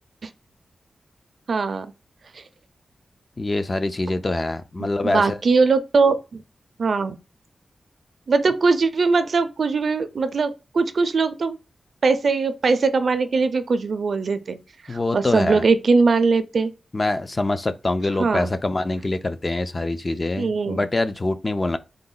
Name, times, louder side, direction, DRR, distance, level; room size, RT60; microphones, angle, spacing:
voice 1, 1.5-1.9 4.8-6.4 6.8-7.2 8.3-11.6 12.0-14.6 14.9-16.7 18.2-18.5 20.4-20.8, right 4 dB, 55° right, 0.4 m, -21 dB
voice 2, 3.4-5.4 14.9-15.6 16.9-21.8, left 2 dB, 25° left, 0.3 m, -24 dB
3.9 x 2.2 x 3.7 m
wide cardioid pair, 160°, 0 cm